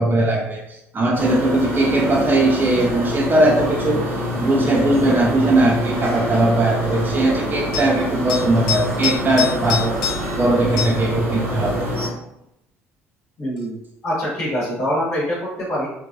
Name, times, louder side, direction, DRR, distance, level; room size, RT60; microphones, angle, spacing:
voice 1, 0.0-11.9, right 2 dB, 25° right, -1 dB, 0.6 m, -19 dB
sound 1, 1.1-12.1, equal, 75° right, 1.3 m, -26 dB
sound 2, 4.9-5.1 7.7-7.9 8.3-10.4 10.8-11.1 13.6-13.7, left 7 dB, 60° left, 0.8 m, -26 dB
voice 2, 13.4-13.8 14.0-15.9, equal, 40° left, -7 dB, 1.2 m, -24 dB
3.4 x 3.2 x 2.5 m, 0.82 s
figure-of-eight pair, 55°, 7 cm